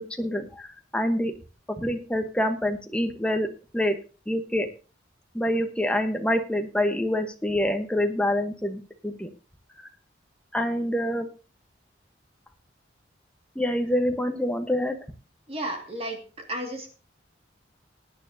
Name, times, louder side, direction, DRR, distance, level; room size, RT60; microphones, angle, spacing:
voice 1, 0.0-1.3 1.8-3.5 3.7-3.9 4.3-4.7 5.3-9.3 10.5-11.3 13.5-15.0, left 1 dB, 5° left, 5 dB, 1.1 m, -26 dB
voice 2, 15.5-16.2 16.5-16.9, right 1 dB, 30° right, 3 dB, 2.1 m, -32 dB
19.5 x 9.2 x 2.7 m, 0.34 s
head